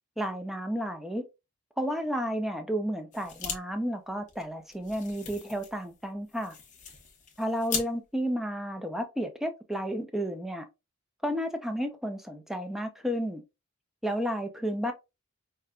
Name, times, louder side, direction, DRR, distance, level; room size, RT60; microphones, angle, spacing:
voice 1, 0.2-1.2 1.8-6.6 7.4-10.6 11.2-13.4 14.0-14.9, equal, ahead, 0.4 m, -32 dB
sound 1, 3.1-3.6 3.9-4.0 4.3-7.9, left 6 dB, 35° left, 0.8 m, -39 dB
5.0 x 2.2 x 2.3 m
head